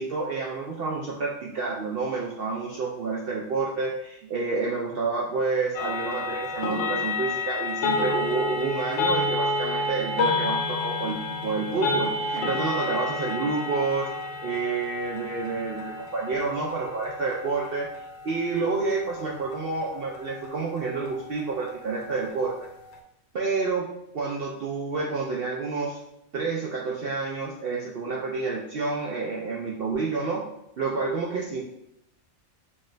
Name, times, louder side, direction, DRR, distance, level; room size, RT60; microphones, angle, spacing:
voice 1, 0.0-14.1 14.4-17.9 18.2-22.7 23.3-23.9 24.1-26.0 26.3-30.5 30.8-31.6, right 4 dB, 65° right, -2 dB, 0.6 m, -29 dB
sound 1, 5.7-23.0, left 3 dB, 75° left, 0.9 m, -31 dB
4.5 x 2.3 x 3.2 m, 0.80 s
omnidirectional pair, 1.5 m